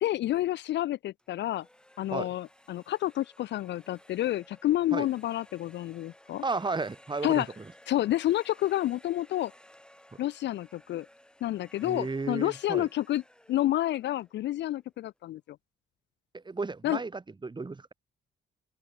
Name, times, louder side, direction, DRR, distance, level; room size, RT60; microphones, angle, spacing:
voice 1, 0.0-1.7 2.0-6.4 7.2-7.5 7.9-9.5 10.2-11.1 11.4-13.2 13.5-15.6 16.8-17.0, left 14 dB, 65° left, 0.4 m, -29 dB
sound 1, 1.2-15.0, left 1 dB, 5° left, 4.8 m, -57 dB
voice 2, 6.4-7.7 11.8-12.9 16.3-17.9, right 3 dB, 20° right, 2.1 m, -34 dB
open air
cardioid pair, 90°, 20 cm